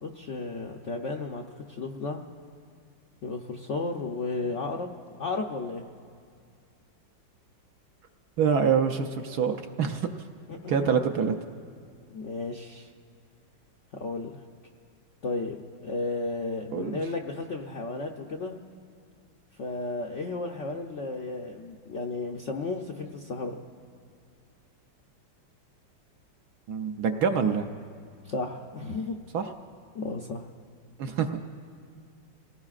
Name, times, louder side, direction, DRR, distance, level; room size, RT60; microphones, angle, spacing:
voice 1, 0.0-1.4 1.7-2.2 3.2-5.8 10.5-11.0 12.1-12.9 13.9-14.3 15.2-15.6 15.8-18.6 19.6-23.6 28.2-29.2 29.9-30.5, left 3 dB, 70° left, 1 dB, 0.7 m, -33 dB
voice 2, 8.4-10.1 10.7-11.3 16.7-17.0 26.7-27.7 29.3-29.4 31.0-31.3, right 6 dB, 65° right, 6 dB, 1.0 m, -25 dB
27.5 x 18.5 x 2.4 m, 2.3 s
omnidirectional pair, 2.1 m